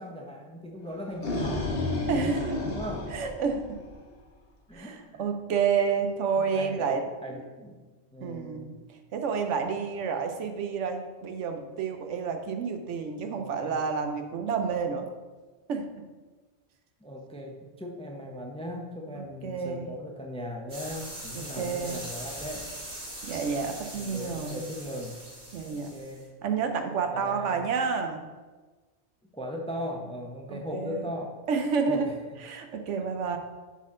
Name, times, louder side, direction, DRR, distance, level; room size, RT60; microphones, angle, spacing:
voice 1, 0.0-1.8 2.6-3.1 4.7-5.2 6.4-7.8 8.1-8.7 13.3-13.9 17.0-22.7 24.0-25.2 25.6-26.2 27.1-27.6 29.3-31.4 31.9-32.1, equal, 5° left, 1 dB, 0.6 m, -38 dB
sound 1, 0.9-4.1, left 2 dB, 55° left, 1.3 m, -31 dB
voice 2, 2.1-2.6 3.1-3.8 4.7-7.0 8.2-15.1 15.7-15.9 19.1-19.9 21.3-22.1 23.2-24.6 25.5-25.9 26.4-28.2 30.5-31.1 31.5-32.1 32.4-33.4, right 5 dB, 80° right, 6 dB, 1.1 m, -30 dB
sound 2, 20.7-26.2, right 1 dB, 55° right, 3.0 m, -41 dB
10.5 x 4.3 x 3.7 m, 1.3 s
omnidirectional pair, 1.2 m